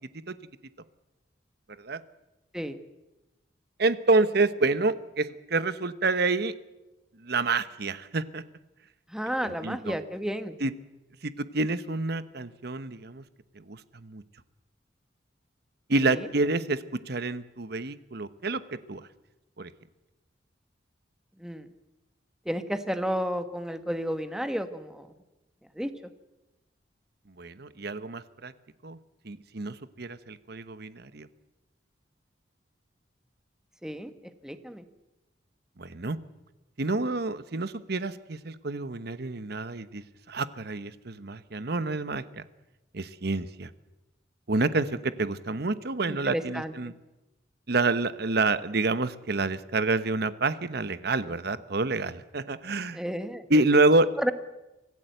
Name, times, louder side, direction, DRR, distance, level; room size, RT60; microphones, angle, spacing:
voice 1, 3.8-6.5 7.2-8.4 9.4-9.9 10.6-10.7 11.2-13.2 13.5-14.2 15.9-19.1 19.6-19.7 27.4-28.5 28.8-29.0 29.2-31.3 35.8-36.2 36.8-40.0 40.3-42.4 42.9-43.7 44.5-46.9 47.7-53.0 53.5-54.1, right 3 dB, 60° right, 13 dB, 1.1 m, -28 dB
voice 2, 9.1-10.6 16.0-16.3 21.4-21.7 22.4-25.1 25.7-25.9 33.8-34.1 34.4-34.8 46.1-46.7 52.9-53.5 54.2-54.3, equal, 5° right, 9 dB, 1.3 m, -32 dB
25.0 x 16.0 x 8.1 m, 1.0 s
head